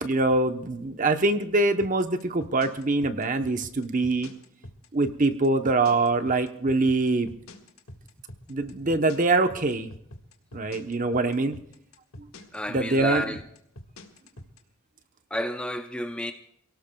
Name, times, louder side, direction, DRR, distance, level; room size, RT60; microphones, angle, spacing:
voice 1, 0.0-4.3 4.9-7.3 8.5-9.9 10.5-11.6 12.7-13.2, right 2 dB, 35° right, 0.9 m, -24 dB
sound 1, 1.8-14.6, left 1 dB, 75° left, 1.8 m, -45 dB
voice 2, 12.5-13.4 15.3-16.3, left 1 dB, 5° left, 0.5 m, -30 dB
28.5 x 17.5 x 2.3 m
head